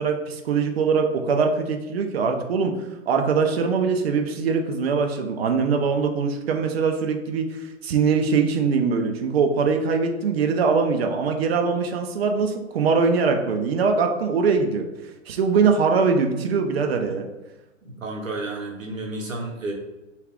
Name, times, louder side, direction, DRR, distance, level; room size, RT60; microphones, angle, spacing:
voice 1, 0.0-2.7 3.1-14.9 15.3-17.3, right 5 dB, 55° right, 4 dB, 0.4 m, -22 dB
voice 2, 17.8-19.7, right 2 dB, 80° right, 0 dB, 0.9 m, -31 dB
2.4 x 2.3 x 3.4 m, 1.1 s
figure-of-eight pair, 120°, 39 cm